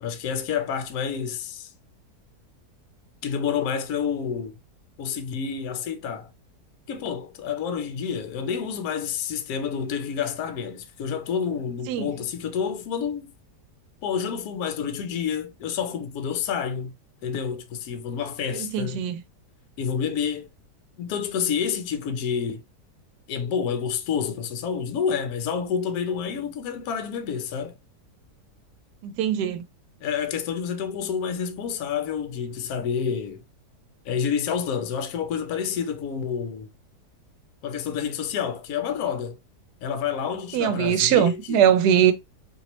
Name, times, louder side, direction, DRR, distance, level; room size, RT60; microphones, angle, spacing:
voice 1, 0.0-1.7 3.2-4.6 5.0-6.3 6.9-13.3 14.0-16.9 17.2-19.0 19.8-20.5 21.0-22.6 23.3-27.7 30.0-33.4 34.0-36.7 37.6-39.4 39.8-41.6, left 7 dB, 70° left, 1.0 m, -29 dB
voice 2, 18.5-19.2 29.0-29.6 40.5-42.1, right 9 dB, 75° right, 1.1 m, -21 dB
3.0 x 2.9 x 2.9 m
omnidirectional pair, 1.8 m